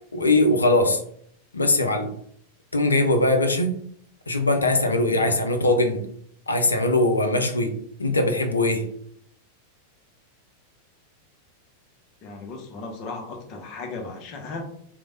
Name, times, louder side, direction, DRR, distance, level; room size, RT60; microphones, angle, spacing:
voice 1, 0.1-1.0 1.5-2.1 2.7-3.7 4.3-6.0 6.5-7.7 8.0-8.9, left 2 dB, 75° left, 6 dB, 0.4 m, -21 dB
voice 2, 12.2-14.7, left 3 dB, 40° left, 2 dB, 0.6 m, -36 dB
3.1 x 2.1 x 2.6 m, 0.66 s
figure-of-eight pair, 90°, 0 cm